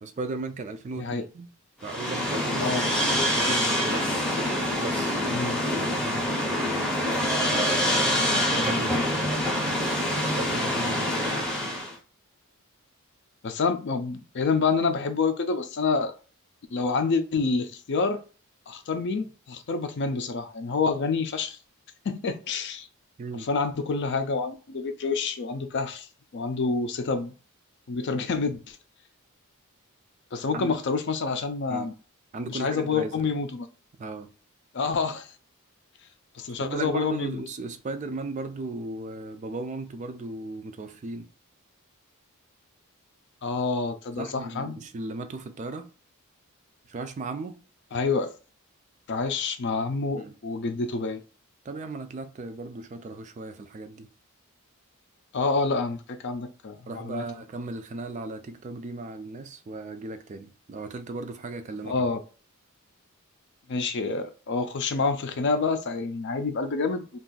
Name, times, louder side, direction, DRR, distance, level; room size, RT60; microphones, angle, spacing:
voice 1, 0.0-1.5 1.8-2.7 3.1-4.2 4.8-6.4 8.5-9.8 10.2-11.4 23.2-23.5 30.5-30.7 31.7-31.9 32.3-33.3 34.0-34.3 36.6-41.3 44.2-45.9 46.9-47.6 50.2-50.3 51.7-54.1 56.9-62.0, right 3 dB, 35° right, 0.3 m, -36 dB
sound 1, 1.8-11.9, equal, 5° left, 0.6 m, -26 dB
voice 2, 2.6-2.9 5.3-5.6 13.4-16.1 16.7-18.2 18.7-21.6 22.0-22.9 23.3-26.1 26.3-27.3 27.9-28.8 30.3-31.9 32.5-33.7 34.7-35.3 36.3-37.4 43.4-44.7 47.9-48.3 49.1-51.2 55.3-57.2 61.8-62.2 63.7-67.2, left 4 dB, 50° left, 0.4 m, -28 dB
2.5 x 2.4 x 3.7 m
head